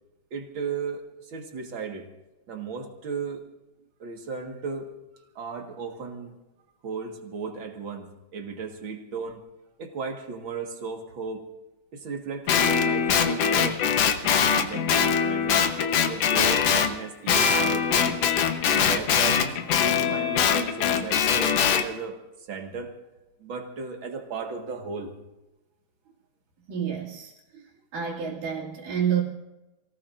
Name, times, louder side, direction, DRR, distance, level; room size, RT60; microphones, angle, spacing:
voice 1, 0.3-2.0 2.5-3.4 4.0-4.9 5.4-6.3 6.8-9.4 9.8-11.4 11.9-15.7 16.1-18.1 18.7-19.5 19.8-22.2 22.5-22.9 23.4-25.1, right 5 dB, 45° right, 3 dB, 1.9 m, -35 dB
Guitar, 12.5-16.9 17.3-21.8, left 7 dB, 65° left, 1.7 m, -22 dB
voice 2, 26.7-27.6 27.9-29.2, right 8 dB, 75° right, -7 dB, 4.2 m, -29 dB
28.5 x 18.5 x 2.6 m, 1.0 s
omnidirectional pair, 3.9 m